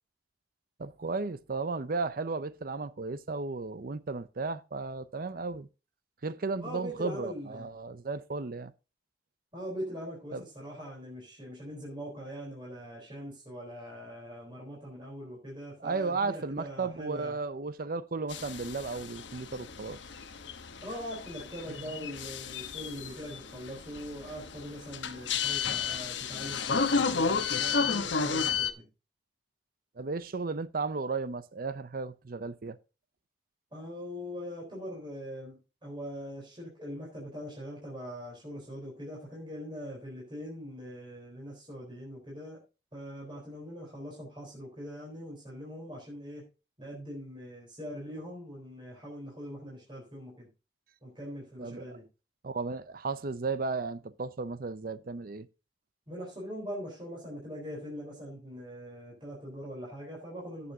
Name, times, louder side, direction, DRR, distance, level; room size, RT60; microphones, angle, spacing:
voice 1, 0.8-5.7 6.2-8.7 10.3-10.4 15.8-20.0 30.0-32.8 51.6-52.0 52.4-55.5, right 4 dB, 50° right, 0.6 m, -34 dB
voice 2, 6.6-7.7 9.5-17.4 20.8-28.9 33.7-42.6 42.9-46.5 46.8-50.5 51.0-52.0 56.1-60.7, equal, 25° right, 4.1 m, -42 dB
sound 1, 18.3-28.7, left 5 dB, 85° left, 1.1 m, -32 dB
17.0 x 7.0 x 2.8 m
head